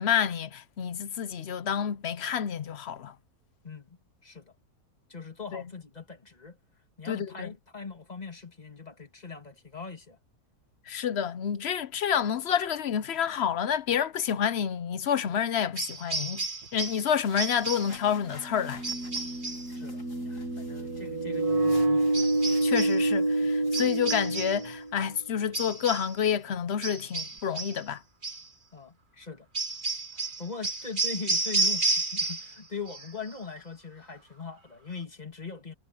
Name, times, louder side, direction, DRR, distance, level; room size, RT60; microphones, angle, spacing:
voice 1, 0.0-3.1 5.5-5.6 7.1-7.5 10.9-16.4 16.7-18.8 22.6-28.0, left 8 dB, 55° left, 0.7 m, -29 dB
voice 2, 3.6-4.5 5.1-6.6 7.0-10.2 19.7-22.1 28.7-29.5 30.1-35.7, left 5 dB, 25° left, 2.3 m, -41 dB
sound 1, 15.8-17.1 17.4-18.0 18.8-19.7 22.1-23.0 23.7-24.7 25.5-26.2 26.8-27.8 28.2-28.5 29.5-32.6 32.9-33.4, right 3 dB, 30° right, 2.0 m, -32 dB
sound 2, 16.7-16.8 18.2-25.1, right 2 dB, 70° right, 2.3 m, -28 dB
sound 3, 16.8-23.8, left 3 dB, 75° left, 5.0 m, -53 dB
omnidirectional pair, 1.7 m